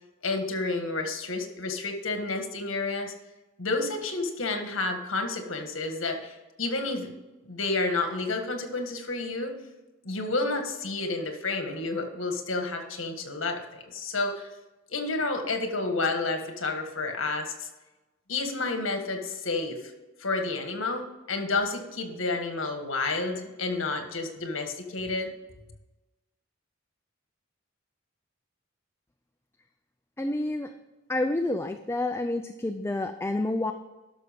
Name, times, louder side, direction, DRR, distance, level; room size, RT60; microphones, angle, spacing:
voice 1, 0.2-3.1 3.6-7.1 7.5-9.5 10.0-14.5 14.9-17.7 18.3-19.8 20.2-25.3, left 3 dB, 75° left, 5 dB, 1.7 m, -30 dB
voice 2, 30.2-30.7 31.1-33.7, left 2 dB, 15° left, 7 dB, 0.4 m, -29 dB
12.5 x 6.2 x 5.2 m, 1.1 s
head